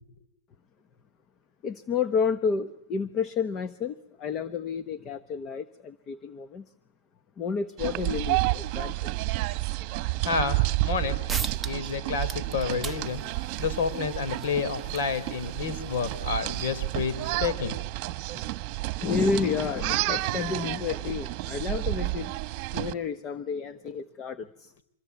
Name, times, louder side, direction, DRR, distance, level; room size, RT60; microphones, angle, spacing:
voice 1, 1.6-6.7 7.4-9.1 18.3-18.4 19.0-22.3 22.7-24.7, left 5 dB, 25° left, 11 dB, 1.1 m, -30 dB
sound 1, 7.8-22.9, right 20 dB, 40° right, 1.3 m, -30 dB
voice 2, 10.2-10.6 10.8-11.1 11.6-13.2 13.6-17.8, left 5 dB, 65° left, 12 dB, 3.9 m, -29 dB
sound 2, 10.9-11.0 11.3-11.9 12.2-17.3, right 4 dB, 5° right, 1.0 m, -41 dB
25.5 x 21.5 x 8.4 m, 0.73 s
hypercardioid pair, 140°, 0 cm